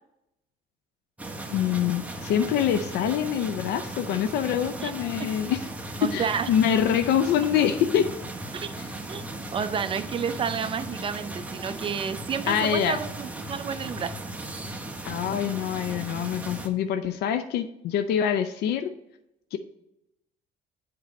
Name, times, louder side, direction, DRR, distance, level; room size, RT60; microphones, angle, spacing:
sound 1, 1.2-16.7, right 1 dB, 10° right, 0.8 m, -37 dB
voice 1, 1.5-5.7 6.1-8.1 8.7-8.9 12.5-13.0 15.0-18.9 19.5-19.6, left 9 dB, 80° left, 10 dB, 0.5 m, -25 dB
voice 2, 6.0-6.5 8.5-9.2 9.5-14.1, right 7 dB, 30° right, 10 dB, 0.5 m, -30 dB
7.5 x 4.7 x 4.1 m, 0.85 s
cardioid pair, 110°, 17 cm